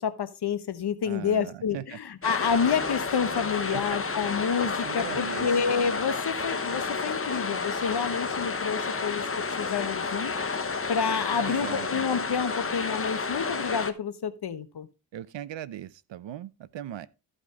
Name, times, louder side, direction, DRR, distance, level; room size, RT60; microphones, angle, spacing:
voice 1, 0.0-9.2 9.6-10.3 10.9-14.9, left 6 dB, 60° left, 1.1 m, -29 dB
voice 2, 1.0-2.0 3.7-4.0 4.6-5.5 11.3-12.0 15.1-17.1, right 11 dB, 75° right, 0.7 m, -39 dB
sound 1, 2.2-13.9, left 4 dB, 30° left, 1.1 m, -31 dB
sound 2, 2.5-6.3, left 2 dB, 15° right, 3.9 m, -52 dB
14.0 x 5.0 x 3.7 m
cardioid pair, 80°, 45 cm